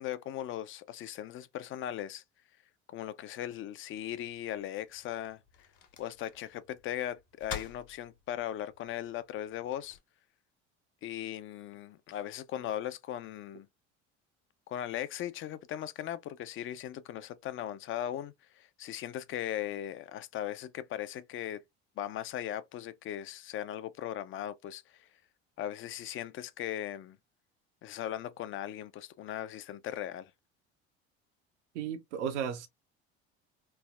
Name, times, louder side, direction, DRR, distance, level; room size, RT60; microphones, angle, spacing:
voice 1, 0.0-2.2 2.9-5.4 6.0-10.0 11.0-13.7 14.7-21.6 22.0-25.1 25.6-27.2 27.8-30.3, left 11 dB, 40° left, 0.4 m, -38 dB
sound 1, 3.9-10.0, left 7 dB, 55° left, 1.1 m, -49 dB
voice 2, 31.7-32.7, right 8 dB, 85° right, 0.6 m, -34 dB
3.3 x 2.0 x 2.3 m
hypercardioid pair, 75°, 35 cm